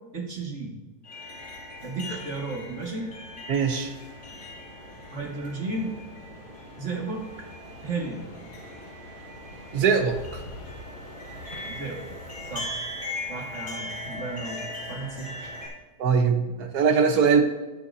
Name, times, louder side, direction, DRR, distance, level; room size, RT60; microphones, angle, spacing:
voice 1, 0.1-0.8 1.8-3.1 5.1-5.9 6.8-7.2 7.8-8.3 11.7-12.0 12.5-12.8 13.3-15.5, right 3 dB, 45° right, -2 dB, 2.3 m, -33 dB
sound 1, 1.0-15.7, left 1 dB, 40° left, 4.6 m, -39 dB
voice 2, 3.5-3.9 9.7-10.4 16.0-17.4, right 6 dB, 75° right, 5 dB, 1.6 m, -21 dB
20.5 x 7.0 x 2.8 m, 1.2 s
omnidirectional pair, 1.7 m